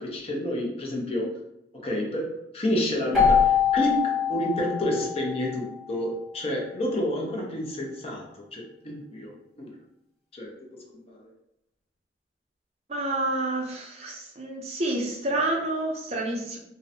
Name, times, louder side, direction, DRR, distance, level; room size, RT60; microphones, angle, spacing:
voice 1, 0.0-1.4 1.7-9.8 10.3-11.3, equal, 35° left, -2 dB, 0.5 m, -30 dB
Keyboard (musical), 3.1-5.8, left 7 dB, ahead, 1.1 m, -23 dB
voice 2, 12.9-16.6, right 2 dB, 35° right, -2 dB, 0.5 m, -29 dB
2.5 x 2.0 x 2.6 m, 0.84 s
head